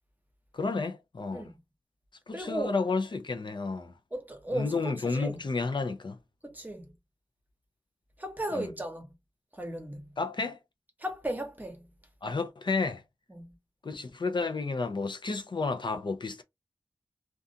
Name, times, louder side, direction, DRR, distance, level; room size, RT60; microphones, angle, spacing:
voice 1, 0.5-1.5 2.3-3.9 4.5-6.2 8.5-8.7 10.2-10.6 12.2-13.0 13.8-16.4, left 4 dB, 55° left, 0.4 m, -31 dB
voice 2, 2.3-2.7 4.1-5.4 6.4-6.9 8.2-9.1 9.6-10.0 11.0-11.8 13.3-13.5, right 1 dB, 20° right, 0.9 m, -35 dB
2.4 x 2.3 x 2.5 m
wide cardioid pair, 85°, 10 cm